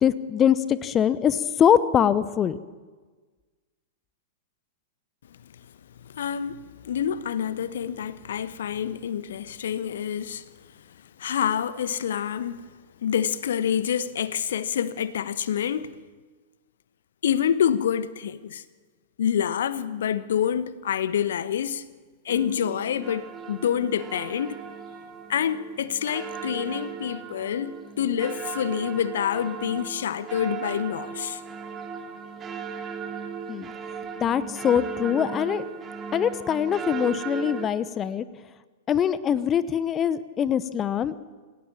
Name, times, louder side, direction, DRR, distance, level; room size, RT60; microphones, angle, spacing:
voice 1, 0.0-2.6 33.5-33.7 34.2-35.6 36.1-38.2 38.9-41.1, left 9 dB, 25° left, 0.9 m, -23 dB
voice 2, 6.0-10.5 11.2-12.7 13.0-15.9 17.2-18.6 19.2-21.8 22.2-24.6 25.3-31.4, left 9 dB, 60° left, 1.0 m, -27 dB
sound 1, 22.3-37.7, right 7 dB, 20° right, 2.3 m, -37 dB
27.0 x 17.0 x 7.4 m
figure-of-eight pair, 100°, 0 cm